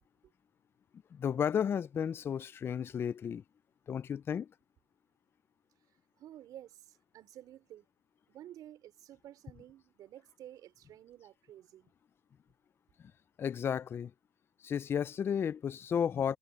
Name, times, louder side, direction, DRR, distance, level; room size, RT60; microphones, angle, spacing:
voice 1, 1.1-3.4 3.9-4.5 13.4-14.1 14.6-16.4, left 8 dB, 30° left, 0.4 m, -33 dB
voice 2, 5.9-7.9 8.3-11.9, right 12 dB, 50° right, 4.2 m, -52 dB
supercardioid pair, 110°, 8 cm